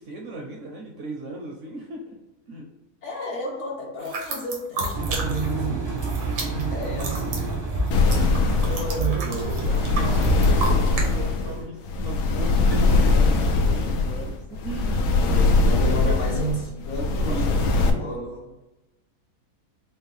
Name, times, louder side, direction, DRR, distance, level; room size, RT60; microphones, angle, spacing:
voice 1, 0.0-2.2 2.5-2.6 9.0-16.3 16.9-17.7, right 2 dB, 65° right, 0 dB, 0.8 m, -37 dB
voice 2, 3.0-9.8 11.4-11.7 15.1-18.5, right 1 dB, 60° left, -1 dB, 0.9 m, -32 dB
sound 1, 4.0-5.7 5.9-11.1, right 2 dB, 90° right, 1.4 m, -32 dB
Engine, 4.9-10.8, right 4 dB, 20° right, 0.4 m, -29 dB
sound 2, 7.9-17.9, left 3 dB, 85° left, 1.1 m, -21 dB
4.3 x 2.1 x 3.3 m, 1.0 s
omnidirectional pair, 1.7 m